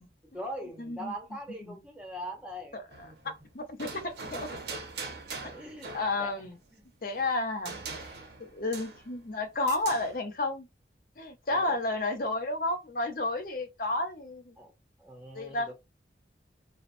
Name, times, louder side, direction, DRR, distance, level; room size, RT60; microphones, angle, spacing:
voice 1, 0.0-3.3 4.7-4.8 5.4-6.3 6.7-6.8 7.2-7.3 8.4-8.5 11.5-11.8 14.6-14.7 15.0-15.7, equal, 5° right, 0.7 m, -42 dB
voice 2, 0.8-1.1 1.6-1.7 2.7-2.8 3.5-4.5 5.7-6.5 7.0-7.8 8.4-10.7 11.2-14.5 15.3-15.7, left 2 dB, 50° left, 0.6 m, -31 dB
sound 1, 2.9-3.3 3.8-6.4 7.6-9.2 9.7-10.2, right 4 dB, 70° right, 0.6 m, -41 dB
2.8 x 2.0 x 2.5 m
head